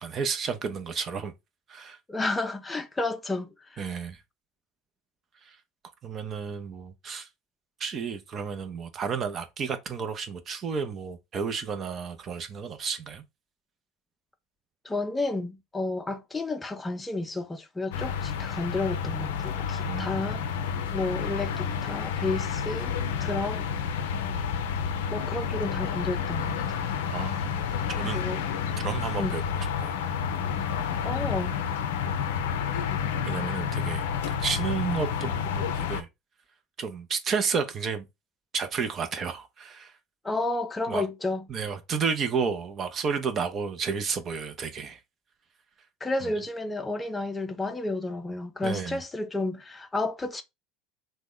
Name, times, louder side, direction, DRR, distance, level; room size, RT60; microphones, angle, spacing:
voice 1, 0.0-1.3 1.7-2.0 3.8-4.2 5.4-5.6 6.0-7.3 7.8-13.2 19.8-20.5 27.1-28.2 28.8-29.5 29.8-30.0 33.2-36.1 36.8-38.1 38.5-39.9 40.9-41.0 41.5-45.0 48.6-49.0, right 6 dB, 40° right, 0.5 m, -32 dB
voice 2, 2.1-4.0 14.8-20.4 20.9-22.9 23.2-23.7 25.1-26.6 28.0-28.5 29.2-29.4 31.0-31.5 40.2-41.5 46.0-50.4, left 2 dB, 15° left, 0.4 m, -31 dB
sound 1, 17.9-36.0, left 7 dB, 75° left, 0.4 m, -30 dB
2.9 x 2.1 x 3.6 m
hypercardioid pair, 80°, 0 cm